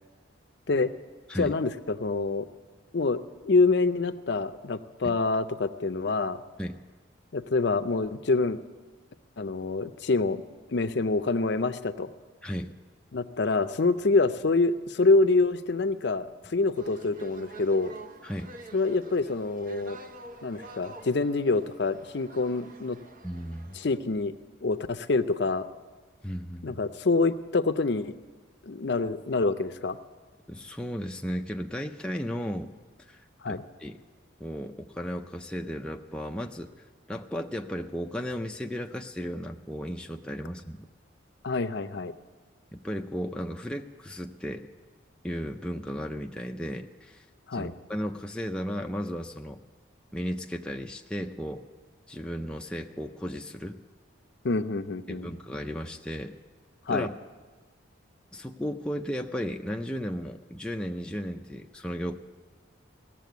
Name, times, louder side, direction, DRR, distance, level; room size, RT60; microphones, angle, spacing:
voice 1, 1.4-2.5 2.9-6.4 7.3-8.6 9.4-10.4 10.7-12.1 13.1-17.9 18.7-20.0 20.4-23.0 23.8-24.3 24.6-25.7 26.6-28.1 28.7-30.0 33.4-33.6 41.4-42.1 47.5-47.7 54.4-55.3 56.9-57.1, left 3 dB, 55° left, 11 dB, 0.5 m, -26 dB
voice 2, 12.4-12.7 18.2-18.5 23.2-23.8 26.2-26.8 30.5-32.7 33.0-34.0 34.4-36.7 37.1-40.9 42.7-44.7 45.2-47.3 47.5-49.6 50.1-51.6 52.1-53.8 55.1-56.4 56.9-57.1 58.3-62.2, equal, 5° left, 2 dB, 0.4 m, -35 dB
sound 1, 16.7-24.0, right 4 dB, 45° right, 0.7 m, -46 dB
17.0 x 7.6 x 9.3 m, 1.4 s
head